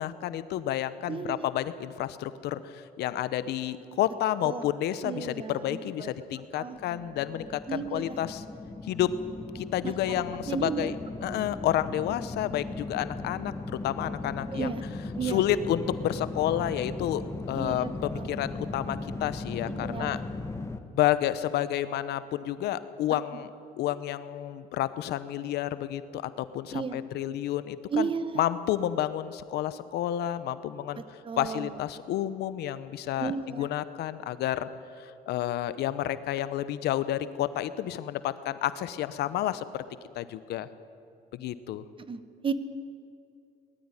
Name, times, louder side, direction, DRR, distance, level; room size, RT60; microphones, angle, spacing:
voice 1, 0.0-8.4 8.8-9.1 9.5-10.9 11.2-13.5 13.8-14.7 15.2-17.2 17.5-20.2 20.9-23.5 23.8-28.1 28.3-31.0 31.4-33.3 33.6-34.7 35.0-39.8 40.1-40.7 41.3-41.8, left 12 dB, 75° left, 14 dB, 0.9 m, -30 dB
voice 2, 1.1-1.5 4.4-4.7 5.0-6.1 6.5-7.0 7.7-8.2 9.8-10.9 11.2-11.4 14.5-14.8 15.2-15.4 17.5-18.3 19.7-20.2 26.7-27.0 27.9-28.4 31.0-31.7 33.2-33.7 42.1-42.5, right 5 dB, 30° right, 12 dB, 1.1 m, -34 dB
sound 1, 6.8-20.8, left 2 dB, 15° left, 1.2 m, -38 dB
20.0 x 13.5 x 9.9 m, 2.4 s
cardioid pair, 110°, 17 cm